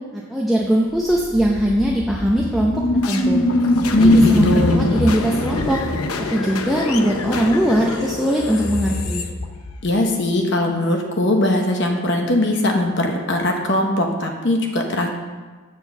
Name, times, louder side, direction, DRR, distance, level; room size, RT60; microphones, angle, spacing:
voice 1, 0.1-3.4 3.8-4.5 4.7-5.8 6.3-9.3, equal, ahead, -3 dB, 0.6 m, -20 dB
sound 1, 0.9-10.0, left 2 dB, 85° left, 0.8 m, -23 dB
voice 2, 3.9-4.8 9.8-15.1, left 1 dB, 55° left, 2 dB, 0.9 m, -19 dB
9.0 x 4.5 x 6.8 m, 1.3 s
head